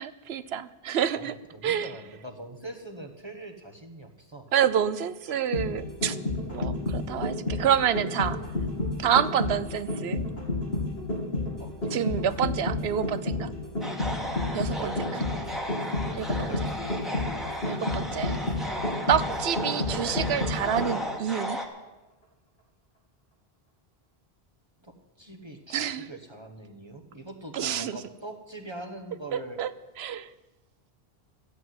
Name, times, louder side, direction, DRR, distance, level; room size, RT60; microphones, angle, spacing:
voice 1, 0.0-1.4 1.6-1.9 4.5-6.2 6.5-8.4 9.0-10.2 11.9-13.5 14.5-15.2 16.1-16.7 17.7-18.4 19.1-21.6 25.7-26.1 27.5-28.0 29.3-29.7 30.0-30.3, right 9 dB, 85° right, 15 dB, 0.9 m, -28 dB
voice 2, 1.1-4.5 11.6-12.3 14.7-15.5 16.3-17.2 24.8-29.6, right 1 dB, 25° right, 3 dB, 1.1 m, -43 dB
sound 1, 5.3-21.2 21.5-21.6, left 2 dB, 80° left, 2.9 m, -30 dB
sound 2, 13.8-21.7, equal, ahead, 1.5 m, -35 dB
13.5 x 8.4 x 9.3 m, 1.1 s
omnidirectional pair, 1.0 m